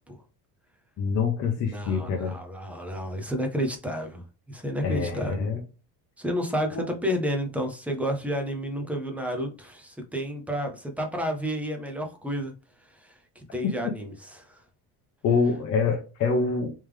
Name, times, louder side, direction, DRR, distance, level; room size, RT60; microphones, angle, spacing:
voice 1, 1.0-2.4 4.8-5.6 6.7-6.9 15.2-16.7, left 5 dB, 40° left, 0.7 m, -26 dB
voice 2, 1.6-5.5 6.2-12.5 12.9-14.6, equal, 5° right, 0.4 m, -31 dB
3.3 x 3.3 x 3.2 m
cardioid pair, 165°, 41 cm